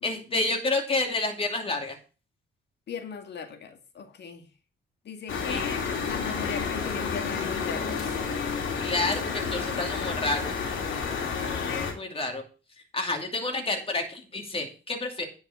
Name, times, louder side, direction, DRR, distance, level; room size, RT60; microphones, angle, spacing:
voice 1, 0.0-2.0 5.5-5.7 8.8-10.5 11.9-12.4 12.9-15.2, left 2 dB, 30° left, 3 dB, 2.6 m, -29 dB
voice 2, 2.9-4.4 5.1-8.1, left 6 dB, 60° left, 6 dB, 2.0 m, -38 dB
sound 1, 5.3-11.9, left 5 dB, 75° left, 2.9 m, -30 dB
10.5 x 5.3 x 6.3 m, 0.35 s
cardioid pair, 90°, 20 cm